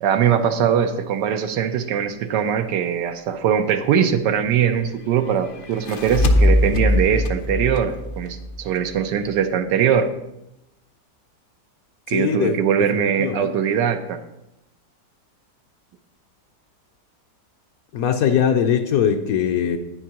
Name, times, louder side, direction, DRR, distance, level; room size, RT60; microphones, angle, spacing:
voice 1, 0.0-10.1 12.1-14.2, right 8 dB, 85° right, 8 dB, 1.4 m, -21 dB
sound 1, 5.6-9.0, left 1 dB, 90° left, 0.4 m, -21 dB
voice 2, 12.1-12.6 13.2-13.5 17.9-19.8, left 8 dB, 70° left, 7 dB, 0.9 m, -20 dB
9.8 x 9.3 x 2.9 m, 0.89 s
omnidirectional pair, 1.8 m